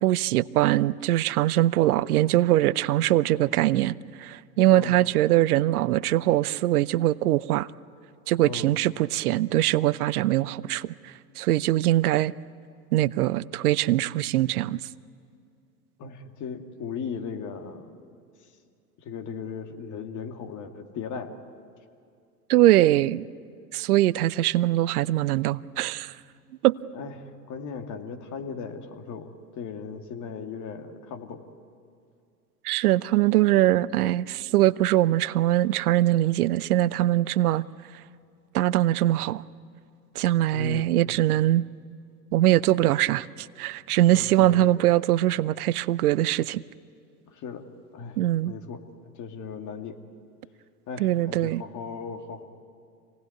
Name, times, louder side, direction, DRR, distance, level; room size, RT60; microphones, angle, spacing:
voice 1, 0.0-7.7 8.3-12.3 12.9-14.8 22.5-23.2 23.7-26.1 26.6-26.8 32.6-37.6 38.5-39.4 40.2-41.6 42.3-46.6 48.2-48.5 51.0-51.6, right 14 dB, 70° right, 19 dB, 0.7 m, -22 dB
voice 2, 4.6-5.0 8.4-8.7 16.0-18.1 19.0-21.4 26.9-31.4 40.5-41.2 44.1-44.7 47.3-47.7 47.9-48.2 48.4-50.0 50.9-52.4, left 6 dB, 40° left, 5 dB, 2.3 m, -37 dB
26.5 x 18.5 x 9.4 m, 2.4 s
hypercardioid pair, 95°, 47 cm